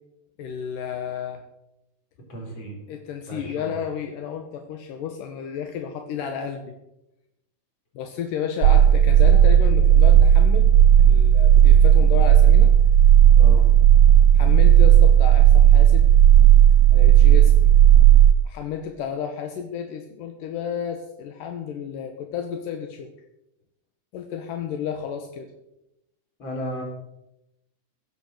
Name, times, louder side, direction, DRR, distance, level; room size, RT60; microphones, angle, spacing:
voice 1, 0.4-1.4 2.9-6.8 8.0-10.7 11.0-12.7 14.3-16.1 16.9-17.7 18.4-23.1 24.1-25.5, left 8 dB, 80° left, 5 dB, 2.6 m, -32 dB
voice 2, 2.3-2.8 3.3-3.8 13.4-13.7 26.4-26.8, right 1 dB, 35° left, 0 dB, 4.4 m, -34 dB
sound 1, 8.6-18.3, right 10 dB, 80° right, 2.1 m, -13 dB
16.0 x 8.6 x 6.5 m, 0.87 s
omnidirectional pair, 3.9 m